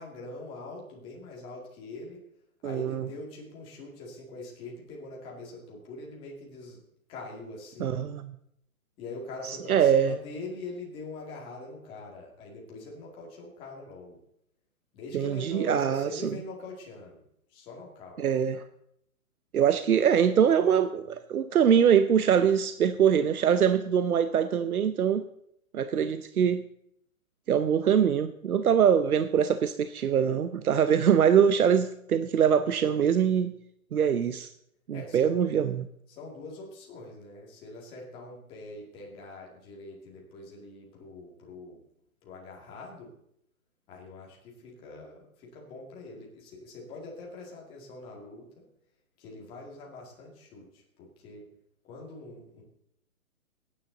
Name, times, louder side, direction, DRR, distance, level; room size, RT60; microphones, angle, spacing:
voice 1, 0.0-2.2 2.6-6.8 7.1-8.0 9.0-14.2 14.9-17.2 17.5-18.2 34.9-35.4 36.1-41.8 42.2-43.1 43.9-48.7 49.2-51.5 51.8-52.6, left 2 dB, 10° left, 2.0 m, -43 dB
voice 2, 2.6-3.1 7.8-8.3 9.4-10.1 15.1-16.3 18.2-18.6 19.5-25.2 25.7-26.6 27.5-33.6 33.9-34.5 34.9-35.9, right 8 dB, 90° right, 0.8 m, -23 dB
21.5 x 9.7 x 3.9 m
hypercardioid pair, 170°, 43 cm